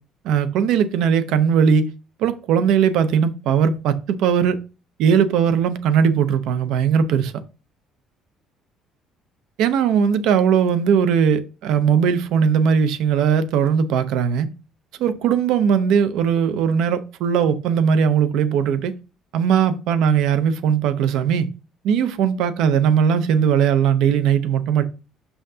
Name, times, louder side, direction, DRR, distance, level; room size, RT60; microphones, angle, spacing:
voice 1, 0.2-1.9 2.2-4.6 5.0-7.3 9.6-14.5 15.0-18.9 19.3-21.5 21.8-24.8, right 7 dB, 75° right, 0.7 m, -19 dB
6.5 x 5.6 x 2.8 m
cardioid pair, 150°, 0 cm